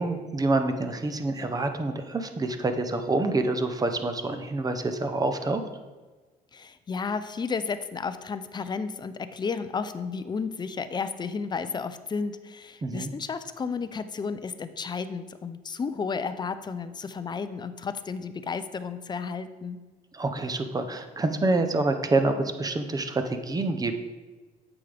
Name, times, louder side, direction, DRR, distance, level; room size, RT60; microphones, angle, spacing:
voice 1, 0.0-5.6 12.8-13.1 20.1-24.0, right 2 dB, 20° right, 8 dB, 0.7 m, -27 dB
voice 2, 6.5-19.8, left 5 dB, 25° left, 12 dB, 0.5 m, -32 dB
8.6 x 7.0 x 3.4 m, 1.3 s
cardioid pair, 110°, 17 cm